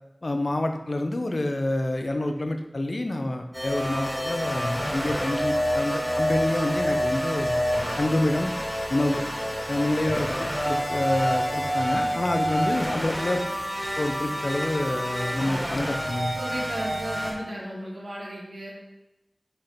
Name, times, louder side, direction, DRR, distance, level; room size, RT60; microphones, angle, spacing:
voice 1, 0.2-7.6 8.0-8.5 8.9-9.2 9.7-13.4 14.0-16.3, left 1 dB, 65° left, 5 dB, 0.6 m, -27 dB
sound 1, 3.5-17.3, equal, ahead, 1.8 m, -28 dB
sound 2, 4.0-11.8, left 1 dB, 45° left, 1.4 m, -36 dB
voice 2, 16.3-18.7, equal, 80° right, -5 dB, 2.0 m, -35 dB
5.3 x 4.3 x 4.3 m, 0.98 s
wide cardioid pair, 45°, 0 cm